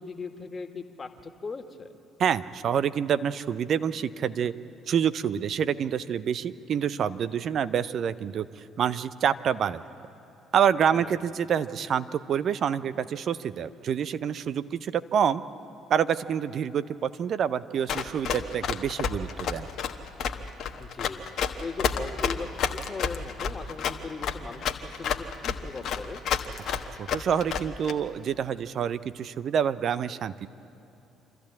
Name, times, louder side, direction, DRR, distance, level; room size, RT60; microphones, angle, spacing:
voice 1, 0.0-1.9 10.9-11.2 20.8-21.2 21.6-26.2, left 4 dB, 30° left, 6 dB, 1.8 m, -39 dB
voice 2, 2.2-4.5 4.9-9.8 10.5-15.4 15.9-19.7 27.0-30.5, right 8 dB, 50° right, 15 dB, 0.7 m, -27 dB
Run, 17.9-27.9, left 7 dB, 55° left, 1.2 m, -29 dB
26.5 x 13.5 x 8.6 m, 2.9 s
figure-of-eight pair, 50°, 0 cm